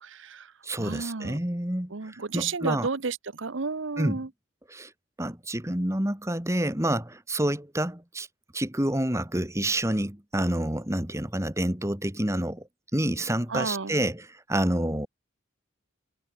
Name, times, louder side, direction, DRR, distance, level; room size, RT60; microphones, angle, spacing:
voice 1, 0.0-0.5 0.8-1.4 1.9-4.3 13.5-14.0, right 4 dB, 75° right, 0.9 m, -32 dB
voice 2, 0.6-2.9 4.0-4.2 4.7-4.9 5.2-8.3 8.5-15.1, right 1 dB, 15° right, 2.0 m, -28 dB
head